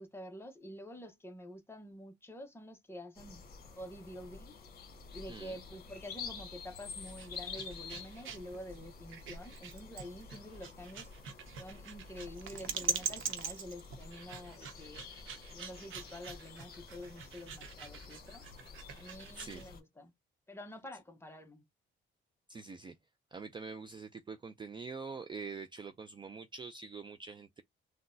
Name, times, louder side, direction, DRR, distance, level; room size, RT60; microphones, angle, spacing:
voice 1, 0.0-3.4 3.8-4.6 5.1-11.1 11.6-15.1 15.5-18.4 18.9-20.1 20.5-21.7, left 1 dB, 10° left, 0.8 m, -48 dB
sound 1, 3.1-19.8, left 5 dB, 50° left, 1.4 m, -49 dB
sound 2, 7.0-19.6, right 6 dB, 75° right, 0.9 m, -43 dB
voice 2, 19.3-19.7 22.5-22.9 23.3-27.6, right 4 dB, 25° right, 0.4 m, -45 dB
3.8 x 2.2 x 2.6 m
cardioid pair, 110°, 21 cm